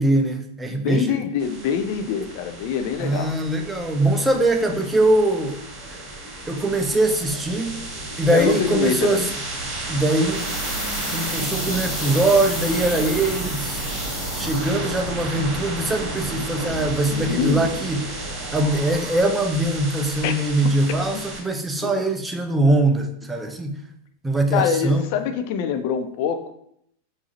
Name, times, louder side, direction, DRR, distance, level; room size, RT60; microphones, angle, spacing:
voice 1, 0.0-1.3 3.0-5.6 6.5-7.9 8.2-9.3 9.9-10.5 11.1-13.8 14.3-18.1 18.5-23.8 24.2-25.0, right 2 dB, 10° right, 5 dB, 0.5 m, -22 dB
voice 2, 0.7-3.3 8.3-9.3 17.1-17.7 20.2-20.3 21.8-22.0 24.5-26.5, left 8 dB, 45° left, 8 dB, 0.4 m, -25 dB
sound 1, 1.4-21.4, right 2 dB, 30° right, 1.7 m, -32 dB
sound 2, 7.7-18.6, right 4 dB, 80° right, 0.8 m, -38 dB
sound 3, 10.3-15.1 15.4-15.5, left 2 dB, 15° left, 1.7 m, -33 dB
4.8 x 2.6 x 4.0 m, 0.71 s
figure-of-eight pair, 90°, 0 cm